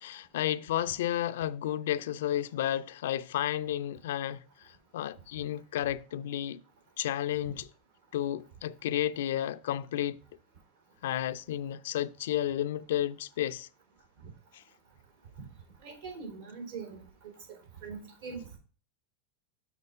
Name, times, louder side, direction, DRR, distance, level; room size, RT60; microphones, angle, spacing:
voice 1, 0.0-6.6 7.0-7.7 8.1-10.2 11.0-13.7 14.5-14.6, left 12 dB, 80° left, 0.4 m, -32 dB
voice 2, 15.8-17.3 17.8-18.6, right 5 dB, 75° right, 3.5 m, -42 dB
6.7 x 4.2 x 5.5 m
supercardioid pair, 125°, 0 cm